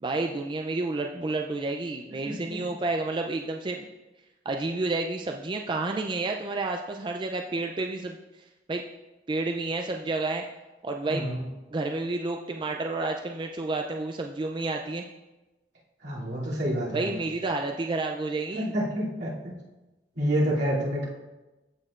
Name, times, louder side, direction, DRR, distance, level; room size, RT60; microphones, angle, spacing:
voice 1, 0.0-3.9 4.5-8.8 9.3-10.4 10.8-11.3 11.7-15.0 16.9-18.7, right 2 dB, 25° right, 3 dB, 0.4 m, -30 dB
voice 2, 2.3-2.6 11.1-11.5 16.0-17.1 18.5-19.5 20.2-21.0, equal, 70° right, -7 dB, 2.6 m, -28 dB
14.5 x 6.4 x 2.4 m, 1.1 s
head